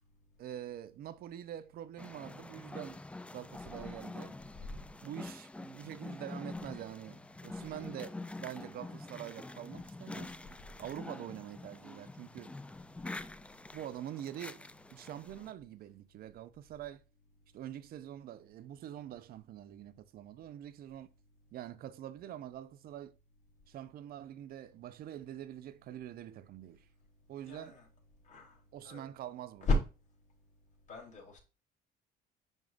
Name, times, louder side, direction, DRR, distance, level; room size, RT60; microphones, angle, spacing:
voice 1, 0.4-3.0 3.3-4.4 5.0-10.4 10.8-12.5 13.7-14.6 14.9-17.0 17.5-21.1 21.5-23.2 23.7-26.9 27.3-27.8 28.7-29.7, right 11 dB, 60° right, 0.6 m, -45 dB
sound 1, 2.0-15.5, left 2 dB, 5° left, 0.3 m, -46 dB
voice 2, 27.4-27.9 28.2-28.6 28.8-29.0 29.6-29.8 30.9-31.4, left 2 dB, 45° left, 3.3 m, -34 dB
10.5 x 3.7 x 2.5 m
cardioid pair, 110°, 17 cm